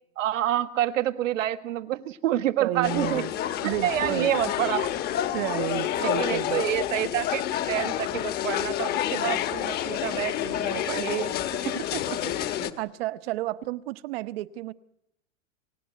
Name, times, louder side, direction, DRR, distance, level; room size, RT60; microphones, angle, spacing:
voice 1, 0.2-3.2 3.6-4.9 6.0-11.3 11.6-11.8, right 12 dB, 80° right, 1.6 m, -28 dB
voice 2, 2.6-3.3 3.6-4.3 5.3-6.6 11.9-14.7, right 16 dB, 50° right, 1.1 m, -32 dB
sound 1, 2.8-12.7, left 12 dB, 25° left, 1.3 m, -29 dB
28.5 x 16.5 x 9.2 m
supercardioid pair, 155°, 38 cm